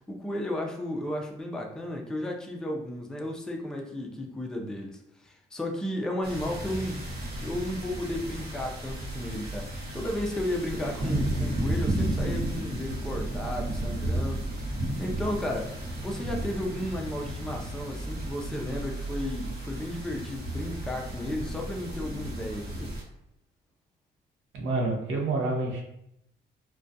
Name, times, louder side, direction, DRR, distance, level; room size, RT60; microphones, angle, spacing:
voice 1, 0.1-7.1 7.4-14.7 15.0-15.8 16.0-23.0, left 1 dB, 5° left, 0 dB, 0.4 m, -34 dB
sound 1, 6.2-23.0, right 1 dB, 55° right, 0.9 m, -33 dB
voice 2, 24.5-25.8, right 2 dB, 85° right, -1 dB, 0.7 m, -28 dB
2.3 x 2.2 x 2.5 m, 0.79 s
cardioid pair, 90°, 20 cm